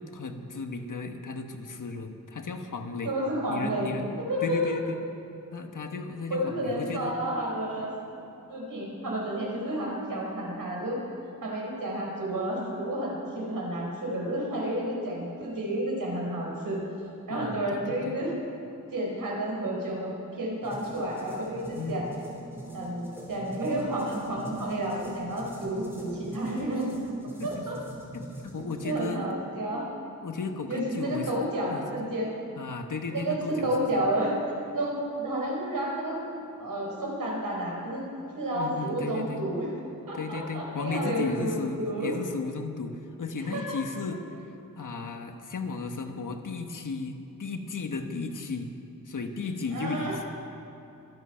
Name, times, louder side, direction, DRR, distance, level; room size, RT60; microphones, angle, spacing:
voice 1, 0.1-3.1 3.5-4.1 4.4-5.0 5.5-7.1 17.3-18.2 21.7-22.1 27.4-27.7 28.1-29.3 30.2-31.8 32.6-34.0 38.5-39.5 40.1-44.2 44.8-48.7 49.0-50.2, left 4 dB, 70° left, 5 dB, 1.3 m, -35 dB
voice 2, 3.0-3.9 4.3-4.6 6.3-7.9 8.5-11.0 11.4-16.8 17.3-18.3 18.9-22.1 22.7-26.9 27.4-27.8 28.8-29.9 30.7-32.3 33.1-34.3 34.7-36.2 36.6-38.0 38.3-39.7 40.1-42.1 43.5-43.6 49.7-50.1, right 1 dB, 80° right, -2 dB, 4.2 m, -31 dB
sound 1, 20.6-28.9, right 1 dB, 5° right, 3.7 m, -43 dB
24.5 x 8.8 x 5.7 m, 3.0 s
wide cardioid pair, 105°, 33 cm